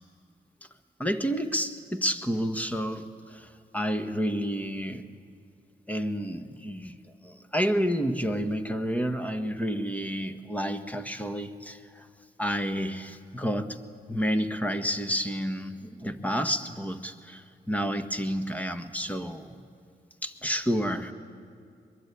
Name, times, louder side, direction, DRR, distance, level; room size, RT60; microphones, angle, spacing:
voice 1, 1.0-5.0 5.9-6.9 7.2-12.1 12.4-13.8 14.1-19.5 20.2-21.1, equal, 10° left, 8 dB, 1.6 m, -30 dB
23.0 x 22.0 x 8.6 m, 2.3 s
cardioid pair, 70°, 17 cm